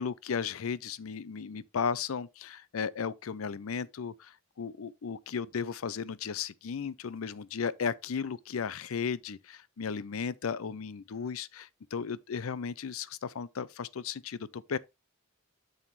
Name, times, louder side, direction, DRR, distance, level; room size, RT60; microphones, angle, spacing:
voice 1, 0.0-14.8, left 6 dB, 80° left, 0.5 m, -35 dB
7.2 x 6.4 x 3.2 m
head